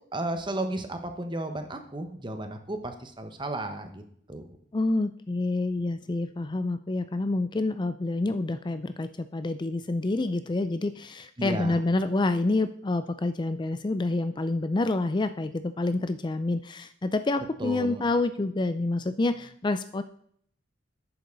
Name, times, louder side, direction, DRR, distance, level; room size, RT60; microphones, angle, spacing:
voice 1, 0.1-4.0 4.3-4.6 11.4-11.8 17.6-18.0, right 1 dB, 25° right, 7 dB, 1.3 m, -33 dB
voice 2, 4.7-20.0, left 2 dB, 25° left, 11 dB, 0.4 m, -28 dB
11.5 x 9.2 x 4.0 m, 0.64 s
head